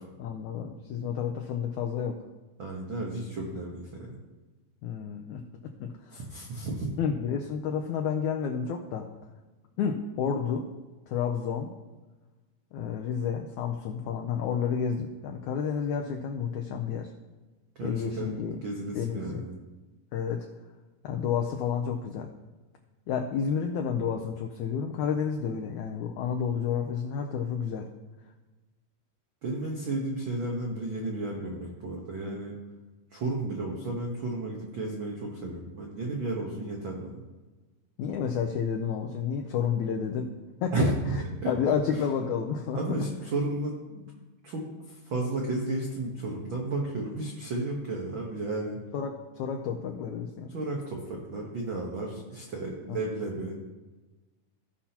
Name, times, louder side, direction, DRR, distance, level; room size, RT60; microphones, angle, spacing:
voice 1, 0.2-2.2 4.8-6.2 7.0-9.1 9.8-10.7 11.1-11.7 12.7-17.1 17.8-18.6 18.9-19.4 20.1-20.5 21.0-22.3 23.1-27.9 38.0-40.3 40.6-40.9 41.5-42.8 48.9-50.5 52.9-53.0, left 7 dB, 80° left, 2 dB, 1.8 m, -30 dB
voice 2, 2.6-4.2 6.1-6.9 17.7-19.6 29.4-32.6 33.1-37.2 40.7-40.9 41.4-41.5 42.7-44.1 44.4-48.8 50.5-53.5, right 2 dB, 90° right, -2 dB, 1.1 m, -33 dB
17.0 x 5.7 x 2.9 m, 1.2 s
omnidirectional pair, 4.0 m